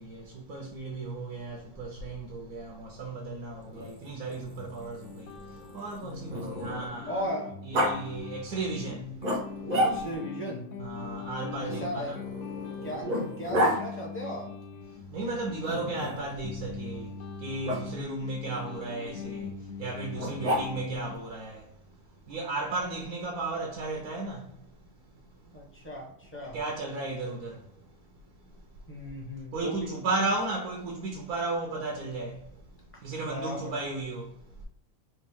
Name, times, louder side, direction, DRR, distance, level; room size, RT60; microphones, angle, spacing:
voice 1, 0.0-5.1 5.7-7.2 7.6-9.0 10.8-12.2 15.1-17.1 17.4-19.4 19.8-21.6 22.3-24.4 26.5-27.6 29.5-32.4 33.0-34.3, right 3 dB, 75° right, 1.1 m, -34 dB
Growling, 3.6-7.0 7.7-7.9 9.2-10.3 11.7-13.8 15.6-16.3 17.6-17.8 20.2-21.0, equal, 45° right, 0.5 m, -31 dB
sound 1, 4.6-21.1, left 5 dB, 65° left, 0.7 m, -42 dB
voice 2, 7.1-7.5 9.8-10.6 11.6-12.2 12.8-14.5 25.5-26.6 28.9-29.9 33.2-33.7, equal, 10° left, 0.8 m, -36 dB
3.4 x 2.5 x 3.5 m
omnidirectional pair, 1.6 m